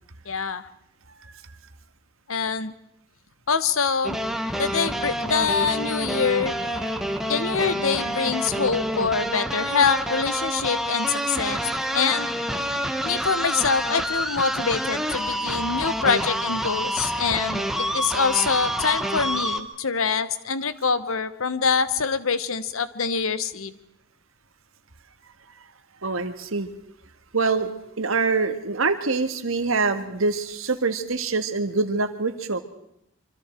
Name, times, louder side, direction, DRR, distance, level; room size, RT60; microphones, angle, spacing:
voice 1, 0.3-0.6 2.3-2.7 3.5-4.2 4.6-6.5 7.3-12.3 13.0-23.7, left 5 dB, 80° left, 13 dB, 1.1 m, -25 dB
sound 1, 4.0-19.6, equal, ahead, 1.1 m, -28 dB
sound 2, 5.3-8.8, right 8 dB, 45° right, 3.9 m, -47 dB
voice 2, 26.0-26.7 27.3-27.7 28.0-32.6, right 4 dB, 75° right, 9 dB, 1.6 m, -24 dB
25.5 x 25.0 x 4.5 m, 0.79 s
head